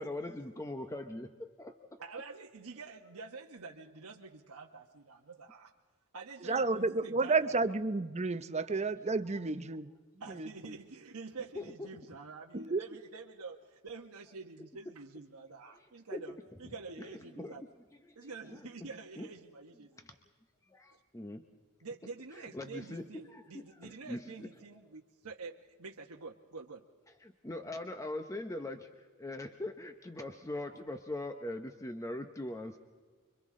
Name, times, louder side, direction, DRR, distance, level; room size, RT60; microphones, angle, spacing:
voice 1, 0.0-1.8 11.5-11.9 15.7-15.8 16.1-16.2 17.0-17.7 18.0-19.3 20.0-20.2 20.7-21.5 22.3-24.5 27.2-32.8, left 1 dB, 15° left, 6 dB, 0.8 m, -42 dB
voice 2, 2.0-5.7 6.1-7.6 10.2-17.6 18.1-20.0 21.8-26.8, right 4 dB, 85° right, 0 dB, 1.1 m, -47 dB
voice 3, 6.4-9.9 10.3-10.8 12.5-12.8, right 3 dB, 30° right, 11 dB, 0.7 m, -31 dB
30.0 x 23.5 x 3.7 m, 1.4 s
head